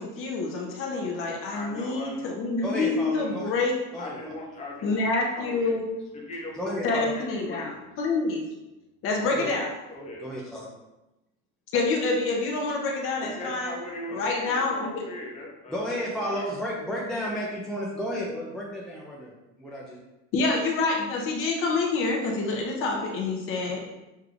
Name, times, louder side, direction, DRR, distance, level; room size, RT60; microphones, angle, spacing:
voice 1, 0.0-3.7 4.8-5.9 6.8-8.4 9.0-9.7 11.7-13.7 14.1-15.0 20.3-23.8, left 3 dB, 40° left, 0 dB, 0.8 m, -27 dB
voice 2, 1.5-2.3 3.1-3.4 4.0-5.0 5.3-5.8 6.3-7.7 9.1-9.4 9.9-10.3 13.2-16.5, left 1 dB, 20° left, -2 dB, 1.0 m, -39 dB
voice 3, 2.6-3.5 3.9-4.3 6.5-7.2 9.3-9.5 10.2-10.7 15.7-20.0, equal, ahead, -4 dB, 0.3 m, -32 dB
6.6 x 3.1 x 2.4 m, 0.99 s
cardioid pair, 155°, 33 cm